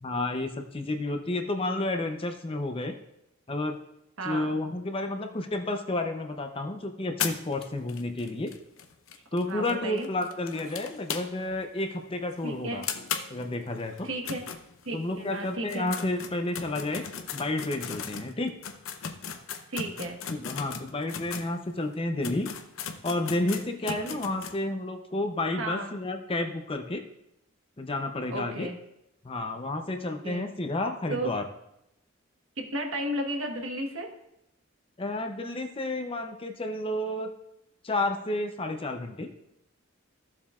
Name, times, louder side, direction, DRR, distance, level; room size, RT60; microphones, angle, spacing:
voice 1, 0.0-3.0 3.5-3.8 4.2-8.5 9.3-12.8 13.3-14.1 14.9-17.1 17.3-18.5 20.3-22.5 23.0-27.0 27.8-28.7 29.2-31.5 35.0-37.3 37.8-39.3, left 2 dB, 25° left, 5 dB, 0.6 m, -31 dB
sound 1, 7.2-11.6 11.9-12.0 12.3-12.4 12.8-15.2 15.6-21.5 21.9-22.0 22.2-24.6, left 7 dB, 70° left, 0.7 m, -37 dB
voice 2, 9.5-10.1 12.4-12.9 14.0-14.4 14.8-15.9 19.7-20.2 23.9-24.2 25.6-25.9 28.3-28.8 30.2-30.5 31.1-31.3 32.6-34.1, right 1 dB, 65° right, 2 dB, 1.3 m, -33 dB
14.5 x 7.2 x 2.4 m, 0.84 s
head